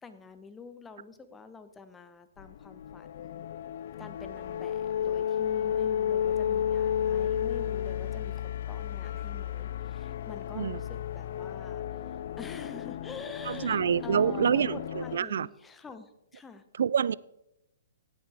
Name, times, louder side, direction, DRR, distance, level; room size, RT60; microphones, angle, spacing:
voice 1, 0.0-3.5 4.0-16.6, left 4 dB, 10° left, 0.9 m, -47 dB
sound 1, 2.4-15.2, left 9 dB, 60° left, 0.4 m, -32 dB
voice 2, 13.5-15.5 16.8-17.1, right 8 dB, 75° right, 0.3 m, -27 dB
16.0 x 8.8 x 3.5 m
hypercardioid pair, 140°, 0 cm